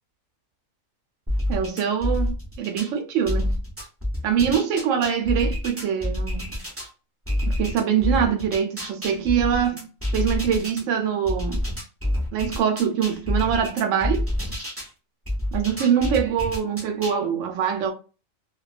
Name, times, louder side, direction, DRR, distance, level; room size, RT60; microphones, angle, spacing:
sound 1, 1.3-2.9 3.3-6.9 7.3-10.8 11.3-14.9 15.3-17.2, left 1 dB, 20° right, 0.3 m, -27 dB
voice 1, 1.5-3.6 4.2-6.6 7.5-11.7 12.3-14.2 15.5-17.9, right 8 dB, 70° right, 0.9 m, -24 dB
2.3 x 2.3 x 2.3 m
omnidirectional pair, 1.4 m